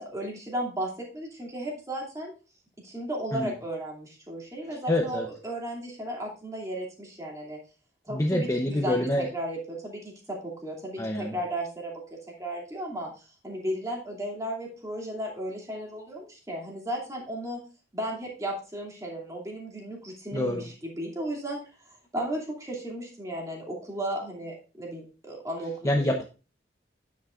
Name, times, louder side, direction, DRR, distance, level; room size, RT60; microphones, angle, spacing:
voice 1, 0.0-2.3 2.8-7.6 8.0-17.6 17.9-21.6 22.1-26.1, right 1 dB, 20° right, -1 dB, 2.6 m, -35 dB
voice 2, 4.9-5.3 8.1-9.3 11.0-11.4 20.3-20.7 25.8-26.2, left 1 dB, 15° left, 2 dB, 0.7 m, -26 dB
9.4 x 8.2 x 2.4 m, 0.33 s
head